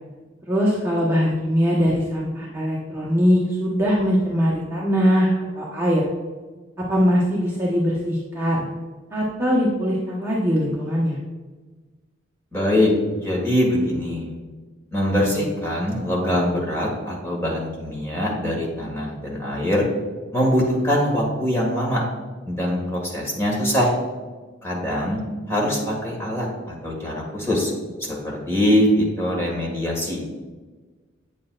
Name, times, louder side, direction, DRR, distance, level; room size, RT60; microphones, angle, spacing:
voice 1, 0.5-5.3 5.5-6.0 6.9-8.6 9.1-11.2, equal, 15° right, -6 dB, 1.1 m, -21 dB
voice 2, 12.5-14.3 14.9-19.8 20.3-22.0 22.4-23.9 24.6-25.2 25.5-27.7 28.0-30.2, equal, 15° left, -3 dB, 1.8 m, -23 dB
8.6 x 7.1 x 2.4 m, 1.3 s
head